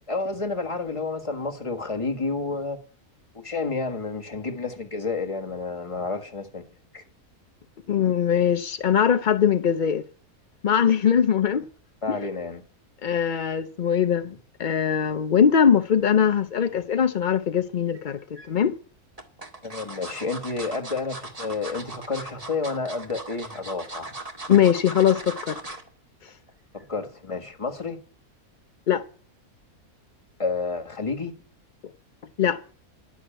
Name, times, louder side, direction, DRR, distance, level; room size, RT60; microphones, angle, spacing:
voice 1, 0.1-2.8 3.3-6.6 6.9-7.0 11.5-11.6 12.0-12.6 19.6-24.1 26.7-28.0 30.4-31.3, left 3 dB, 20° left, 1.6 m, -30 dB
voice 2, 7.9-10.0 10.6-11.6 12.1-12.2 13.0-14.3 14.6-18.2 18.5-18.7 24.5-25.6 28.9-29.0 32.4-32.6, left 8 dB, 55° left, 0.5 m, -21 dB
sound 1, 17.9-18.5 19.2-25.9 26.3-26.5 26.8-26.9, right 2 dB, 25° right, 1.8 m, -38 dB
11.0 x 6.2 x 8.9 m
omnidirectional pair, 1.6 m